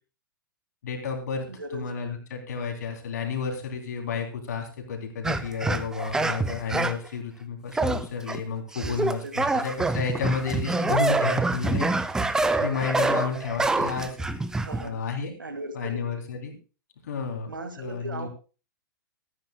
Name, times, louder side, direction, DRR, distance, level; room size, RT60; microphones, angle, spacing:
voice 1, 0.8-11.9 12.2-14.2 14.8-15.3 15.7-16.6 17.0-17.5 17.8-18.3, left 5 dB, 55° left, 3 dB, 3.1 m, -31 dB
voice 2, 1.5-1.9 8.7-9.6 12.3-12.9 14.6-15.0 15.4-16.1 17.5-18.3, right 2 dB, 75° right, 9 dB, 1.8 m, -38 dB
sound 1, 5.2-7.1 7.7-8.4 8.7-14.9, right 3 dB, 5° right, 0.6 m, -26 dB
24.0 x 9.8 x 2.2 m, 0.34 s
figure-of-eight pair, 110°, 11 cm